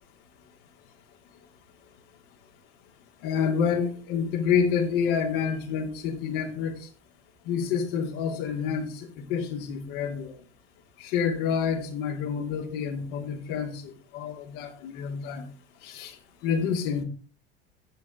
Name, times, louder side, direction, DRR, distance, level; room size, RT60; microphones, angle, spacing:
voice 1, 3.2-6.7 7.5-10.3 11.0-15.5 15.8-16.1 16.4-17.0, left 7 dB, 65° left, 2.5 m, -28 dB
9.9 x 7.4 x 4.7 m
hypercardioid pair, 75°, 30 cm